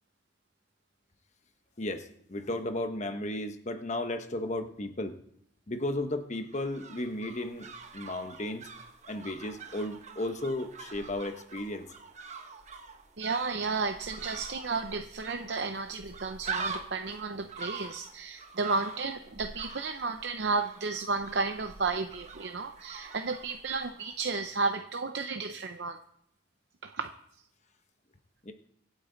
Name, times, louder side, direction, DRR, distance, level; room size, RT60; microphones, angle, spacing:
voice 1, 1.8-5.1 5.7-7.7 7.9-8.7 9.1-11.9 28.4-28.5, left 1 dB, 40° left, 8 dB, 1.1 m, -34 dB
sound 1, 6.3-24.5 24.7-24.8, right 4 dB, 40° right, 1.1 m, -44 dB
voice 2, 13.2-26.0 26.8-27.1, right 4 dB, 65° right, 7 dB, 0.7 m, -33 dB
25.0 x 8.3 x 4.0 m, 0.70 s
head